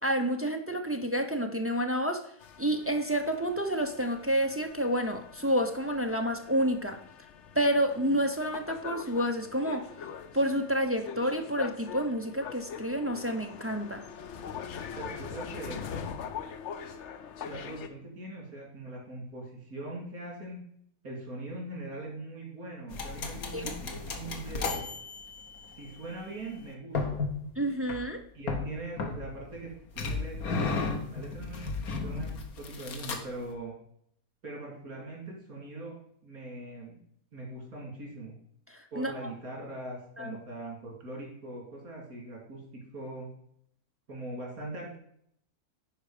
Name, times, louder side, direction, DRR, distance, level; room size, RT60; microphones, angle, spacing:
voice 1, 0.0-2.3 2.6-7.0 7.5-9.9 10.3-14.0 23.5-23.7 27.6-28.2 38.7-39.3 40.2-40.4, equal, 15° right, 4 dB, 0.4 m, -29 dB
sound 1, 2.4-17.9, left 7 dB, 60° left, 1.0 m, -43 dB
voice 2, 14.9-16.0 17.4-20.6 21.0-24.8 25.8-27.3 28.3-31.7 32.0-32.3 32.6-33.7 34.4-36.0 36.2-37.0 37.3-38.4 38.9-43.3 44.1-45.0, right 2 dB, 85° right, -2 dB, 3.4 m, -41 dB
sound 2, 22.9-25.9 26.9-27.4 27.9-28.0 28.5-29.6 30.0-33.4, left 4 dB, 85° left, 1.6 m, -34 dB
10.5 x 4.8 x 5.0 m, 0.68 s
omnidirectional pair, 1.5 m